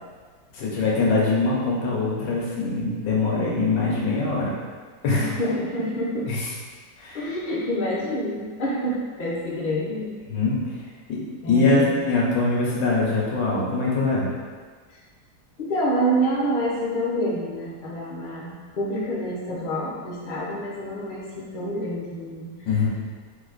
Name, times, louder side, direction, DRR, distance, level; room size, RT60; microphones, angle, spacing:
voice 1, 0.5-4.5 5.0-5.3 6.3-6.5 7.0-7.2 10.3-10.6 11.1-11.2 11.5-14.3 22.6-22.9, left 3 dB, 90° left, -5 dB, 1.7 m, -22 dB
voice 2, 5.2-6.3 7.1-10.2 11.4-11.9 15.6-22.7, equal, 35° left, -6 dB, 0.9 m, -27 dB
4.1 x 2.9 x 4.0 m, 1.5 s
omnidirectional pair, 1.9 m